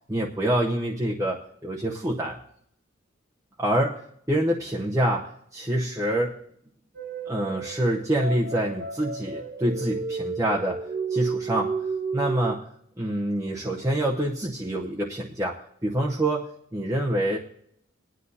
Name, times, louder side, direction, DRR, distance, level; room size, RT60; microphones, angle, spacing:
voice 1, 0.1-2.4 3.6-4.0 4.3-6.4 7.3-10.8 11.1-11.7 12.1-12.6 13.0-17.4, right 1 dB, 15° right, -4 dB, 0.8 m, -26 dB
sound 1, 6.9-12.5, right 4 dB, 55° right, 1.3 m, -32 dB
19.5 x 9.8 x 2.8 m, 0.70 s
head